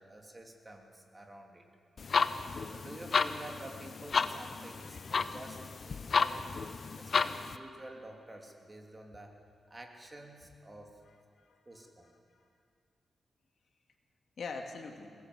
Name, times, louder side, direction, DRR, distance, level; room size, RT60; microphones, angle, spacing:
voice 1, 0.0-1.6 2.7-5.6 5.8-6.6 7.0-9.3 9.7-11.0 11.7-12.1, right 1 dB, 20° right, 2 dB, 2.8 m, -49 dB
sound 1, 2.0-7.6, left 5 dB, 50° left, 0.7 m, -32 dB
voice 2, 4.8-5.2 11.1-11.9 12.3-12.5 14.4-15.1, left 4 dB, 65° left, 4 dB, 2.3 m, -45 dB
23.0 x 19.5 x 7.9 m, 2.3 s
wide cardioid pair, 125°, 0 cm